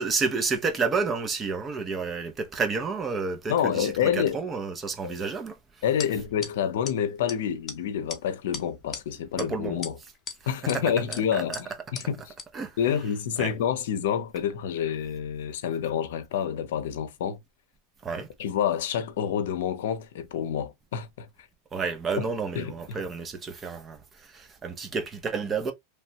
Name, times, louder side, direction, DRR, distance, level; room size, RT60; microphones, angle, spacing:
voice 1, 0.0-5.6 9.4-9.8 10.7-10.8 11.1-11.6 12.5-12.8 13.4-13.5 18.0-18.3 21.7-25.7, right 4 dB, 20° right, 0.6 m, -30 dB
voice 2, 3.5-4.4 5.0-5.1 5.8-10.0 10.5-11.5 11.9-12.3 12.8-17.4 18.4-21.3 22.2-22.3 22.6-23.0, left 8 dB, 80° left, 0.6 m, -28 dB
sound 1, 6.0-6.1 6.4-6.5 6.9-7.0 7.3-7.4 7.7-7.8 8.1-8.2 8.5-9.0 9.4-9.5 9.8-10.4 10.7-10.8 11.1-11.2 11.5-11.6 12.0-12.1 12.4-12.5, left 6 dB, 30° left, 0.7 m, -36 dB
3.0 x 2.2 x 2.8 m
supercardioid pair, 135°, 0 cm